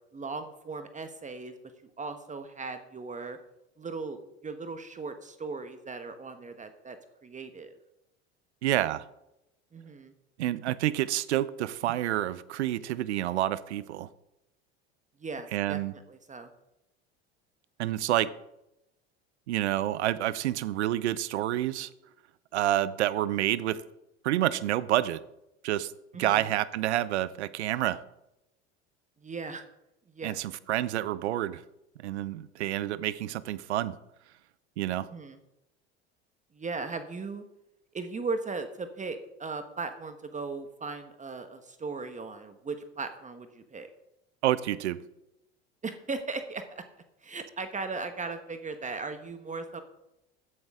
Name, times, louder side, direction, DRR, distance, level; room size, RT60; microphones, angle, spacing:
voice 1, 0.1-1.5 2.0-3.4 3.8-7.0 7.2-7.7 9.7-10.1 15.2-15.8 16.1-16.5 26.1-26.5 29.2-29.6 30.1-30.4 35.1-35.4 36.5-37.4 37.9-43.9 45.8-46.8 47.2-49.8, right 4 dB, 20° right, 1.2 m, -37 dB
voice 2, 8.6-9.0 10.4-14.1 15.5-15.9 17.8-18.3 19.5-21.9 22.5-23.8 24.2-25.2 25.6-25.9 26.2-28.0 30.2-31.6 32.0-34.0 34.8-35.1 44.4-45.0, right 13 dB, 85° right, 0.7 m, -28 dB
15.0 x 11.0 x 3.7 m
hypercardioid pair, 85°, 33 cm